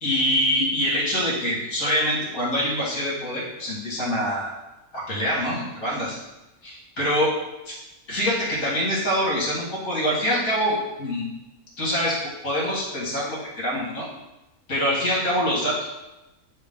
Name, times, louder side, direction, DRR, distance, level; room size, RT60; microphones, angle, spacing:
voice 1, 0.0-4.5 4.9-6.2 6.6-7.3 7.7-7.8 8.1-11.3 11.8-12.2 12.4-14.1 14.7-15.8, equal, 65° left, -7 dB, 2.4 m, -25 dB
9.7 x 3.3 x 3.7 m, 0.97 s
omnidirectional pair, 1.5 m